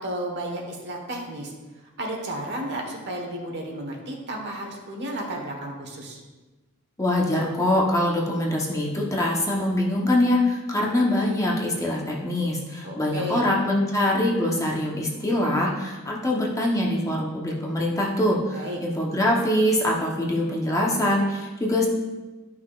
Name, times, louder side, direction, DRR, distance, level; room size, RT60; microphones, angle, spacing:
voice 1, 0.0-1.5 2.0-6.2 12.8-13.5 18.5-18.8, right 1 dB, 55° right, 1 dB, 1.4 m, -32 dB
voice 2, 7.0-21.9, left 1 dB, 15° left, -3 dB, 1.0 m, -24 dB
11.5 x 5.8 x 2.5 m, 1.2 s
head